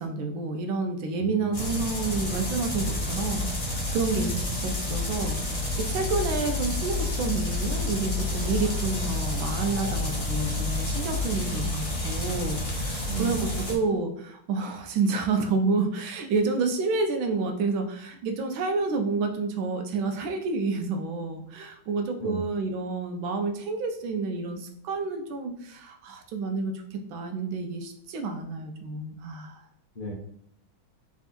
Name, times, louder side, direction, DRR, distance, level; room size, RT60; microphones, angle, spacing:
voice 1, 0.0-29.6, right 3 dB, 75° right, 5 dB, 1.4 m, -29 dB
voice 2, 1.2-1.7 13.0-13.6 22.2-22.4 29.9-30.1, right 6 dB, 40° left, -6 dB, 0.7 m, -33 dB
sound 1, 1.5-13.8, left 2 dB, 20° left, 1.0 m, -29 dB
3.5 x 3.5 x 4.2 m, 0.71 s
omnidirectional pair, 2.3 m